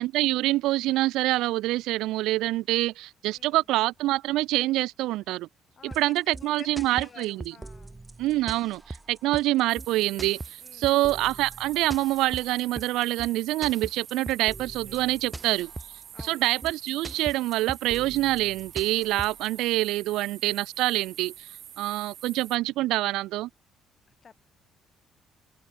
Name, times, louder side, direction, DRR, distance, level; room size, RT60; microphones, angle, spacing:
voice 1, 0.0-5.5 5.8-7.5 8.2-15.7 16.2-21.5 21.8-23.5, right 17 dB, 85° right, 0.3 m, -26 dB
voice 2, 3.3-3.6 5.8-8.0 10.6-11.2 14.9-15.7 16.1-16.5 24.2-24.3, left 6 dB, 35° left, 8.0 m, -51 dB
sound 1, 5.9-19.5, right 2 dB, 15° right, 3.9 m, -41 dB
sound 2, 9.7-22.6, right 11 dB, 60° right, 3.0 m, -46 dB
cardioid pair, 130°, 0 cm